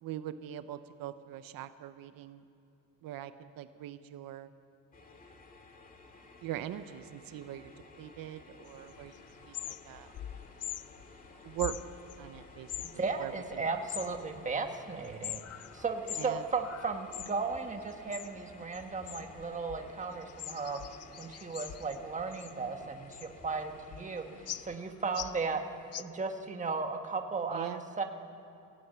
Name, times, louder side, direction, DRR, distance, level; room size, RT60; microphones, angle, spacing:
voice 1, 0.0-2.4 3.0-4.5 6.4-7.7 8.0-10.2 11.4-11.8 12.2-13.6 16.2-16.4 27.5-27.8, right 12 dB, 80° right, 11 dB, 0.9 m, -41 dB
sound 1, 4.9-24.8, left 3 dB, 25° left, 2.2 m, -55 dB
sound 2, 8.7-26.0, left 12 dB, 45° left, 0.5 m, -45 dB
voice 2, 13.0-20.8 21.2-25.6 26.0-28.0, right 4 dB, 20° right, 4 dB, 1.6 m, -35 dB
22.5 x 16.0 x 9.3 m, 2.8 s
cardioid pair, 145°, 34 cm